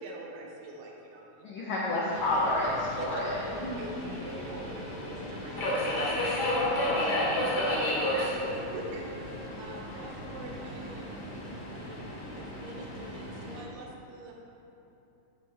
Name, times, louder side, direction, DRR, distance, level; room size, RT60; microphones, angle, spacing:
voice 1, 0.0-1.5 2.9-3.2 3.8-6.9 7.7-14.3, right 2 dB, 75° right, -1 dB, 2.0 m, -44 dB
voice 2, 1.4-3.9 6.9-7.8 9.9-10.0, left 2 dB, 85° left, -5 dB, 1.1 m, -31 dB
Subway metro underground, 2.1-13.6, left 1 dB, 50° left, 1.3 m, -33 dB
8.5 x 3.3 x 6.2 m, 2.9 s
omnidirectional pair, 3.5 m